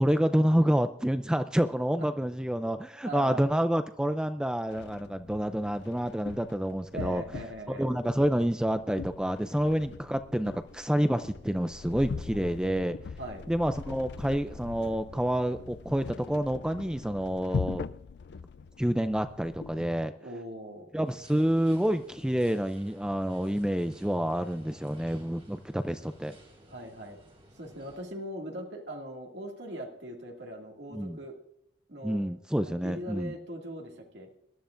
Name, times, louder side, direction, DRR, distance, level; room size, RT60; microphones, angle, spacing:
voice 1, 0.0-7.2 7.7-13.0 13.5-17.8 18.8-20.1 20.9-26.4 30.9-31.2 32.0-33.3, equal, 5° right, 9 dB, 0.4 m, -28 dB
voice 2, 3.0-3.4 6.9-7.9 13.2-13.4 20.2-20.9 26.7-27.2 27.6-31.4 31.9-32.2 32.6-34.3, right 1 dB, 70° right, 0 dB, 2.3 m, -40 dB
sound 1, 4.7-19.9, left 5 dB, 70° left, 0.4 m, -41 dB
sound 2, 21.0-28.0, right 1 dB, 35° right, 4.3 m, -55 dB
21.0 x 12.5 x 2.5 m, 0.73 s
head